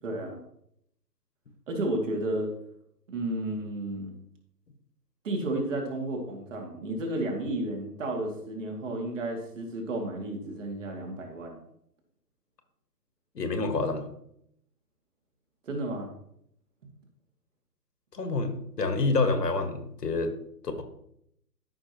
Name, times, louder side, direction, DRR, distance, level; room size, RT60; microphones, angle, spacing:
voice 1, 0.0-0.4 1.7-2.5 3.1-4.2 5.2-11.6 15.6-16.1, right 1 dB, 50° right, 2 dB, 2.4 m, -32 dB
voice 2, 13.3-14.1 18.1-20.3, left 3 dB, 70° left, 7 dB, 1.6 m, -27 dB
13.5 x 5.8 x 3.0 m, 0.74 s
figure-of-eight pair, 140°, 50 cm